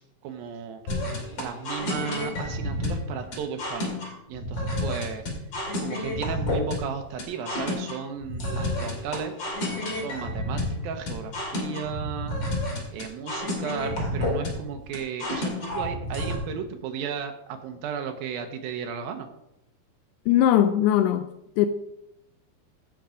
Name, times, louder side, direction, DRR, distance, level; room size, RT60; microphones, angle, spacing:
voice 1, 0.2-0.8 1.4-4.0 4.3-5.2 5.8-9.3 9.9-12.4 12.9-19.3, right 7 dB, 80° right, 6 dB, 2.1 m, -34 dB
sound 1, 0.9-16.3, left 1 dB, 40° left, 3.2 m, -30 dB
voice 2, 20.3-21.3 21.6-21.7, left 11 dB, 85° left, 11 dB, 2.6 m, -20 dB
15.0 x 6.0 x 5.1 m, 0.83 s
omnidirectional pair, 5.2 m